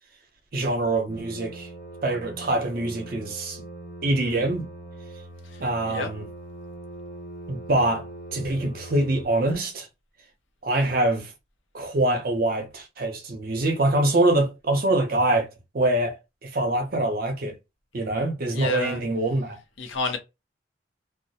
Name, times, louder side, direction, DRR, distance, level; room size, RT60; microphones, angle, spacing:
voice 1, 0.5-1.7 2.0-3.7 4.0-4.7 5.6-6.2 7.5-9.9 10.6-11.3 11.7-15.5 15.7-16.2 16.4-17.6 17.9-19.6, right 1 dB, 50° right, 0.6 m, -24 dB
sound 1, 1.1-9.3, right 2 dB, 45° left, 0.5 m, -41 dB
voice 2, 18.5-19.0 19.8-20.2, left 3 dB, 85° left, 0.7 m, -29 dB
2.2 x 2.0 x 2.7 m
head